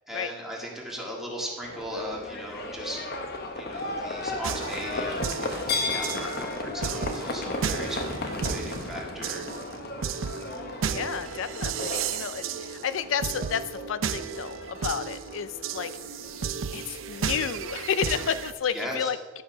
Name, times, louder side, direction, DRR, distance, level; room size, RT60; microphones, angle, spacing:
voice 1, 0.1-3.0 3.5-9.5 18.7-19.1, equal, ahead, -3 dB, 1.8 m, -37 dB
Livestock farm animals working animals, 1.6-18.1, left 2 dB, 50° left, 0.9 m, -35 dB
sound 1, 4.4-18.5, right 7 dB, 80° right, 0.5 m, -34 dB
voice 2, 10.9-16.0 16.7-19.4, left 7 dB, 75° left, 13 dB, 0.4 m, -31 dB
11.5 x 5.6 x 5.9 m, 1.3 s
head